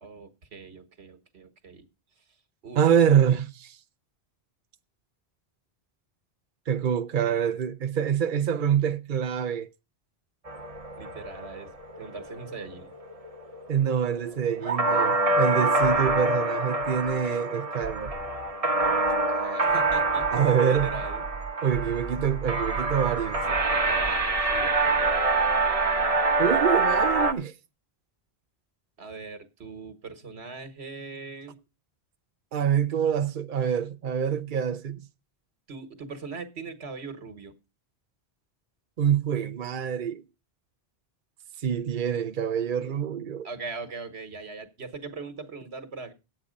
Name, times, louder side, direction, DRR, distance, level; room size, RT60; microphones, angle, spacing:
voice 1, 0.0-1.9 2.6-2.8 11.0-12.9 19.3-20.3 20.6-21.2 23.8-25.2 29.0-31.6 35.7-37.5 43.4-46.1, right 4 dB, 90° right, 1.6 m, -40 dB
voice 2, 2.8-3.8 6.7-9.7 13.7-18.1 20.3-20.9 21.6-23.4 26.4-27.5 32.5-35.0 39.0-40.2 41.6-43.5, right 8 dB, 55° right, 0.8 m, -25 dB
sound 1, 10.5-27.3, right 2 dB, 35° right, 1.2 m, -26 dB
10.0 x 8.6 x 5.1 m
omnidirectional pair, 1.1 m